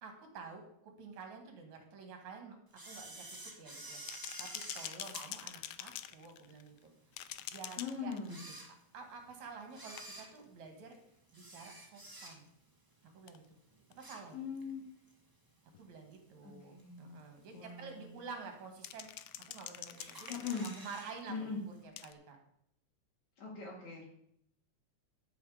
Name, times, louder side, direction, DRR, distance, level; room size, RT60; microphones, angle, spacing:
voice 1, 0.0-2.6 2.8-4.0 4.4-4.5 4.7-6.9 7.5-8.1 8.9-11.0 11.3-12.5 13.0-13.4 14.0-14.4 15.8-19.1 19.4-21.3 21.7-22.4, right 5 dB, 70° right, 4 dB, 3.3 m, -50 dB
Camera, 2.7-6.3 6.8-6.9 7.6-7.7 8.2-9.2 9.7-12.7 13.0-13.3 13.7-14.7 15.1-15.2 16.1-16.2 16.8-17.2 17.6-17.7 17.9-18.0 18.2-18.3 19.0-19.6 20.0-21.1 21.4-21.5 21.8-21.9, right 1 dB, 20° right, 0.5 m, -50 dB
sound 1, 4.1-6.8 7.1-8.6 10.0-10.4 13.3-13.4 13.9-14.0 15.7-15.8 18.8-21.2 22.0-22.1, left 13 dB, 85° left, 1.3 m, -46 dB
voice 2, 7.8-8.5 14.3-14.8 16.4-17.2 17.5-18.1 20.3-20.7 21.3-21.6 23.4-24.1, left 5 dB, 65° left, -5 dB, 3.7 m, -41 dB
14.5 x 7.1 x 5.0 m, 0.72 s
omnidirectional pair, 3.4 m